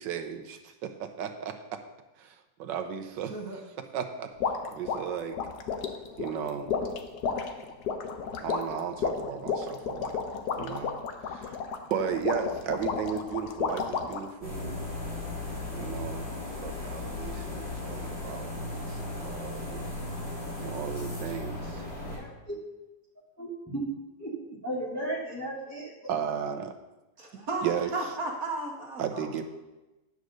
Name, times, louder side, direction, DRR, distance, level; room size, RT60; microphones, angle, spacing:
voice 1, 0.0-1.5 2.2-3.3 3.9-4.3 4.7-5.4 6.2-6.7 8.4-10.2 10.6-11.0 11.3-11.6 11.9-14.8 15.7-16.3 16.6-19.9 20.6-21.8 26.1-26.7 27.6-27.9 29.0-29.4, right 8 dB, 85° right, 5 dB, 1.5 m, -35 dB
voice 2, 3.3-3.6 27.2-29.3, right 2 dB, 55° right, 1 dB, 1.6 m, -34 dB
sound 1, 4.4-14.3, left 6 dB, 65° left, 1.3 m, -32 dB
sound 2, 14.4-22.2, left 2 dB, 35° left, 4.2 m, -36 dB
voice 3, 22.0-22.6 23.4-23.8 24.2-24.3 24.6-25.9 26.2-26.3, right 1 dB, 10° left, -6 dB, 2.1 m, -35 dB
9.5 x 5.2 x 6.4 m, 1.0 s
omnidirectional pair, 1.9 m